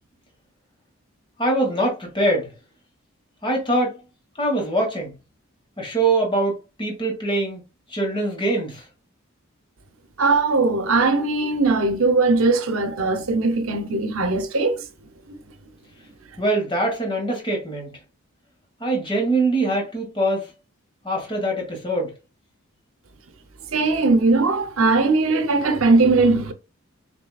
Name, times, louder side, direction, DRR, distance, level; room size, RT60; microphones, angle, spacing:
voice 1, 1.4-2.5 3.4-4.0 4.4-5.1 5.8-7.6 7.9-8.8 16.4-18.0 18.8-20.5 21.0-22.1, right 2 dB, 20° left, 1.4 m, -23 dB
voice 2, 10.2-14.8 23.7-26.5, right 3 dB, 75° right, 0.8 m, -19 dB
6.0 x 2.7 x 2.3 m
head